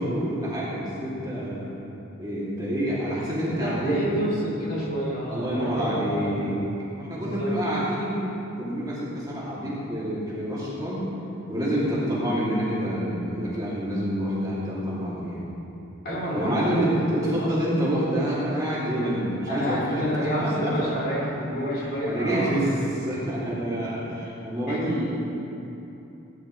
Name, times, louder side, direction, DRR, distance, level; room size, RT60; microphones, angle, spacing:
voice 1, 0.0-1.7 2.2-4.0 5.3-6.6 7.0-8.3 8.6-11.0 11.5-15.4 16.3-20.0 20.4-20.7 22.1-25.1, equal, 20° right, -9 dB, 2.7 m, -27 dB
voice 2, 3.5-6.6 7.1-7.5 16.0-17.6 19.5-22.5 23.7-23.9 24.7-24.8, equal, 45° left, -6 dB, 3.3 m, -29 dB
17.5 x 11.0 x 3.2 m, 2.8 s
head